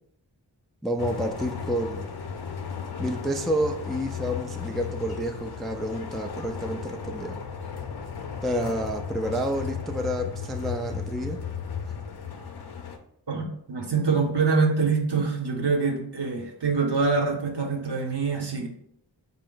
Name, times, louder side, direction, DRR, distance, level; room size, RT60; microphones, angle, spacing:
voice 1, 0.8-2.1 3.0-7.4 8.4-11.4, right 1 dB, ahead, 3 dB, 0.3 m, -29 dB
sound 1, 1.0-13.0, left 6 dB, 60° left, 0.6 m, -35 dB
voice 2, 13.3-18.7, right 4 dB, 65° right, 2 dB, 0.8 m, -25 dB
4.2 x 2.0 x 3.8 m, 0.72 s
wide cardioid pair, 40°, 43 cm